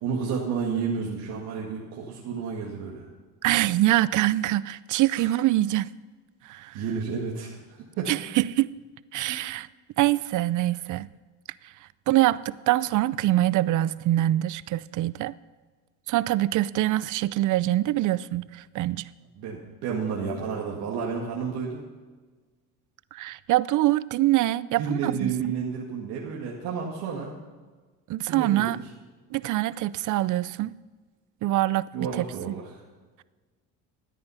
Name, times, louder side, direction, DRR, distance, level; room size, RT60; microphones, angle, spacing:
voice 1, 0.0-3.1 5.2-5.3 6.7-8.1 9.2-9.4 19.4-21.8 24.8-27.3 28.3-28.7 31.9-32.7, right 6 dB, 75° right, 2.1 m, -31 dB
voice 2, 3.4-5.9 6.4-6.8 8.1-8.7 9.1-9.7 10.0-11.1 11.6-11.7 12.1-15.3 16.1-19.1 23.1-25.5 28.1-28.8 29.3-30.7 31.4-31.9 32.1-32.3, right 15 dB, 50° right, 0.5 m, -24 dB
13.5 x 9.6 x 5.7 m
supercardioid pair, 90°, 39 cm